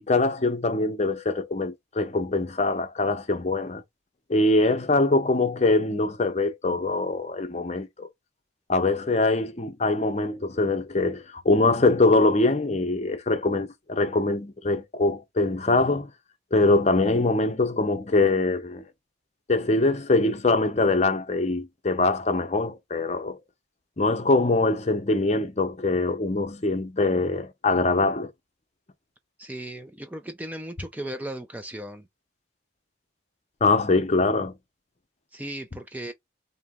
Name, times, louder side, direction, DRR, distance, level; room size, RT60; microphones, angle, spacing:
voice 1, 0.0-3.8 4.3-8.1 8.7-16.1 16.5-18.8 19.5-23.4 24.0-28.3 33.6-34.5, left 2 dB, 35° left, 0.6 m, -23 dB
voice 2, 29.4-32.1 35.3-36.1, right 1 dB, 10° right, 0.3 m, -36 dB
4.0 x 2.7 x 3.6 m
head